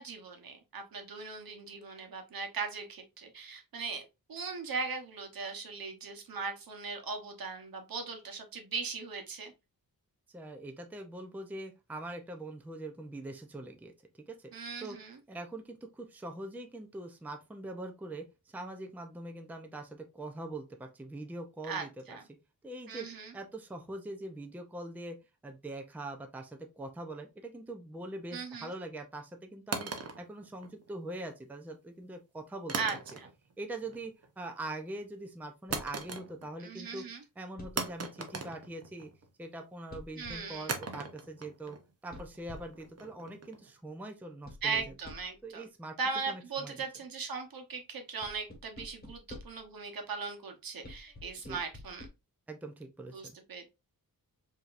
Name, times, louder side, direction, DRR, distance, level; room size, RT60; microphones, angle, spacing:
voice 1, 0.0-9.5 14.5-15.2 21.6-22.2 22.9-23.3 28.3-28.7 32.8-33.3 36.6-37.2 40.2-40.7 44.6-45.6 46.0-52.1 53.1-53.7, right 5 dB, 70° right, 4 dB, 1.0 m, -39 dB
voice 2, 10.3-13.9 14.3-14.5 14.8-15.0 15.3-22.2 22.6-23.1 23.3-25.2 25.4-32.8 33.6-37.0 37.4-39.1 39.4-41.8 42.0-44.9 45.4-45.9 46.3-46.7 51.4-51.6 52.5-53.3, right 2 dB, 5° right, 4 dB, 0.5 m, -43 dB
sound 1, 29.7-31.1 32.7-33.5 33.8-34.3 35.7-36.7 36.9-37.0 37.8-39.3 40.7-43.7, right 4 dB, 45° right, 0.7 m, -40 dB
sound 2, 35.7-36.0 37.6-38.0 39.9-40.6 42.1-42.9 44.4-45.4 48.2-49.7 50.8-52.1, left 2 dB, 25° left, 1.4 m, -49 dB
4.9 x 2.8 x 2.4 m, 0.26 s
wide cardioid pair, 150°, 36 cm